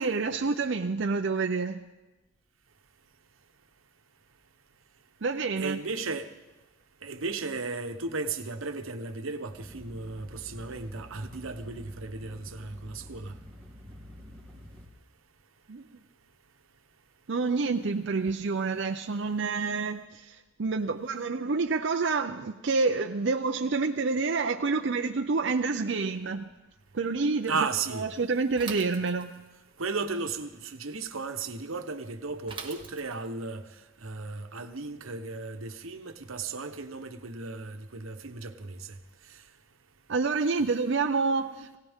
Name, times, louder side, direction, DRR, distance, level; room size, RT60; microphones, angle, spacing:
voice 1, 0.0-1.8 5.2-5.8 15.7-15.8 17.3-26.5 26.9-27.6 27.9-29.3 40.1-41.8, right 4 dB, 60° right, 0.6 m, -28 dB
voice 2, 5.6-6.3 7.0-13.3 27.5-28.1 29.8-33.6 34.0-38.8, right 4 dB, 90° right, 1.1 m, -35 dB
sound 1, 9.5-14.9, left 1 dB, 10° left, 2.5 m, -48 dB
Bicycle / Mechanisms, 28.6-29.6 32.5-33.4, right 5 dB, 25° right, 1.3 m, -42 dB
22.0 x 17.5 x 3.6 m
head